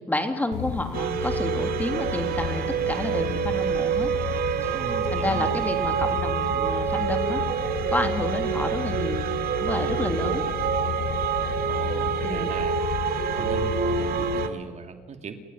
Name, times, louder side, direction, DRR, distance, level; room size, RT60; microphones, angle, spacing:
voice 1, 0.1-4.1 4.6-4.7 5.1-7.4 7.9-9.3 9.6-10.4 12.2-12.6, left 1 dB, 10° left, 6 dB, 3.2 m, -30 dB
sound 1, 0.5-14.5, left 10 dB, 75° left, 1.3 m, -33 dB
sound 2, 0.9-14.5, right 8 dB, 60° right, 2.6 m, -27 dB
voice 2, 4.7-5.7 11.7-12.7 13.3-15.3, right 6 dB, 45° right, 6 dB, 2.5 m, -38 dB
29.5 x 16.0 x 9.6 m, 1.4 s
cardioid pair, 110°, 17 cm